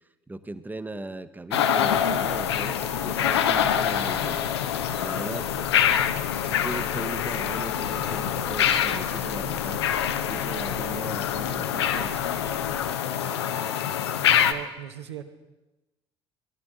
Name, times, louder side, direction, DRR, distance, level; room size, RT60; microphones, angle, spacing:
voice 1, 0.3-4.5 5.0-5.7 6.4-9.9 10.2-12.5, right 2 dB, 15° right, 12 dB, 0.7 m, -38 dB
sound 1, 1.5-14.5, left 9 dB, 80° left, 0.5 m, -25 dB
sound 2, 1.8-12.9, left 3 dB, 30° left, 1.3 m, -43 dB
voice 2, 14.2-15.2, right 10 dB, 85° right, 5 dB, 0.7 m, -39 dB
15.0 x 12.0 x 3.6 m, 1.1 s
figure-of-eight pair, 55°, 14 cm